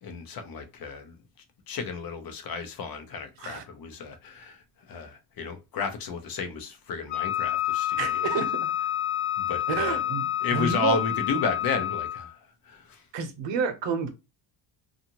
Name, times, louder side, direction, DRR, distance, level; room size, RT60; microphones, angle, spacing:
voice 1, 0.0-1.2 1.7-8.0 9.4-10.0 10.4-12.4 12.6-13.0, left 4 dB, 45° left, 0.7 m, -32 dB
Wind instrument woodwind instrument, 7.1-12.3, left 13 dB, 90° left, 1.1 m, -28 dB
voice 2, 8.0-8.7 9.7-11.0 13.1-14.1, right 5 dB, 60° right, 0.8 m, -30 dB
2.6 x 2.5 x 2.9 m
cardioid pair, 100°, 48 cm